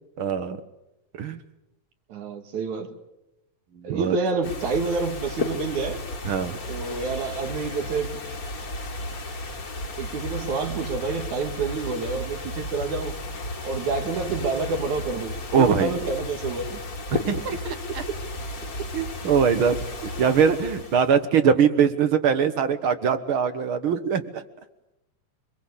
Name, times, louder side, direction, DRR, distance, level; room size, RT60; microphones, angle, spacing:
voice 1, 0.2-0.6 1.2-1.4 3.9-4.2 6.2-6.6 15.5-15.9 17.1-17.6 18.9-19.8 20.2-24.4, right 7 dB, 55° right, 11 dB, 1.7 m, -22 dB
voice 2, 2.1-2.9 3.8-6.0 6.7-8.2 10.0-13.1 13.7-16.8 17.5-17.6, right 4 dB, 70° right, 6 dB, 3.5 m, -28 dB
sound 1, 4.4-21.2, left 2 dB, 35° left, 2.0 m, -34 dB
25.0 x 22.5 x 8.5 m, 0.93 s
omnidirectional pair, 3.5 m